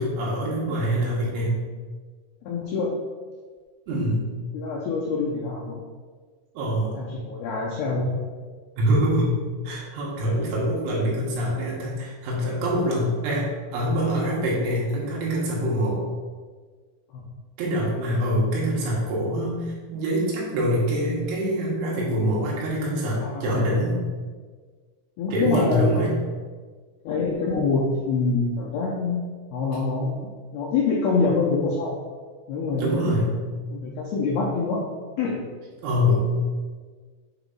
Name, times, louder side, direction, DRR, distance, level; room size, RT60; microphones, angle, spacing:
voice 1, 0.0-1.6 3.9-4.3 6.6-7.0 8.8-9.4 9.7-16.0 17.6-24.0 25.3-26.2 32.8-33.4 35.8-36.3, equal, 80° right, -5 dB, 4.0 m, -24 dB
voice 2, 2.5-2.9 3.9-4.0 4.5-5.8 6.9-8.1 17.1-17.2 23.2-23.8 25.2-26.1 27.0-29.2 29.5-30.2 30.5-32.0 32.5-33.1 33.7-34.8 35.2-35.4, left 4 dB, 80° left, -5 dB, 2.2 m, -25 dB
7.9 x 3.0 x 5.4 m, 1.5 s
omnidirectional pair, 5.5 m